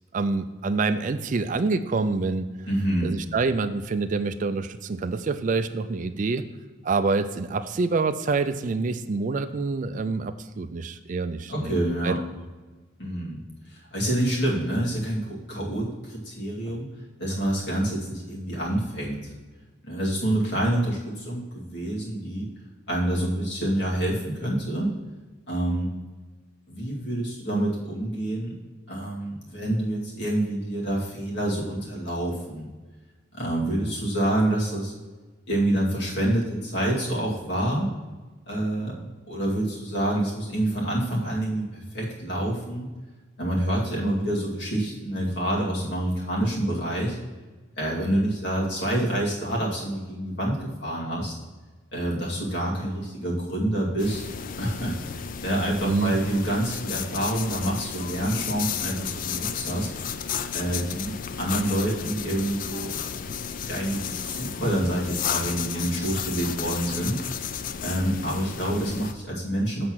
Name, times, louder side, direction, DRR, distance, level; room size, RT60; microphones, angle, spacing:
voice 1, 0.1-2.5 3.0-6.4 6.8-11.8 12.0-12.1 16.7-16.8 55.9-56.2, right 3 dB, 40° right, 10 dB, 0.4 m, -26 dB
voice 2, 2.7-3.1 11.5-12.2 13.0-13.4 13.7-16.9 17.2-19.3 19.8-22.5 22.9-24.9 25.5-25.9 26.7-28.5 28.9-32.7 33.3-34.9 35.5-37.9 38.5-39.0 39.3-42.9 43.4-47.2 47.8-51.3 51.9-54.2 54.5-59.9 60.5-63.0 63.7-67.2 67.8-69.9, right 1 dB, 60° left, -4 dB, 2.3 m, -27 dB
sound 1, 54.0-69.1, left 7 dB, 45° left, 0.4 m, -33 dB
7.9 x 4.2 x 6.2 m, 1.3 s
head